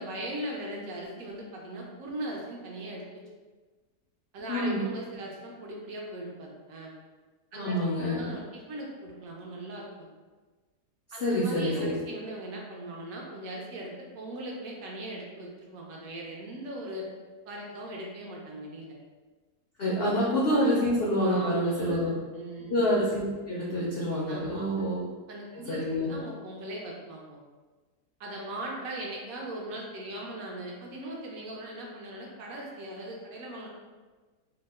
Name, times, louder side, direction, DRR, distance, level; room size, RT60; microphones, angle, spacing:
voice 1, 0.0-3.2 4.3-6.9 7.5-10.1 11.1-17.1 17.5-19.0 20.2-20.3 21.3-22.7 24.3-24.7 25.3-27.4 28.2-33.7, right 1 dB, 70° right, -1 dB, 0.9 m, -39 dB
voice 2, 4.5-4.8 7.5-8.3 11.2-11.9 19.8-22.1 22.7-25.1 25.7-26.1, equal, 75° left, -6 dB, 0.5 m, -27 dB
2.8 x 2.1 x 3.3 m, 1.3 s
omnidirectional pair, 1.7 m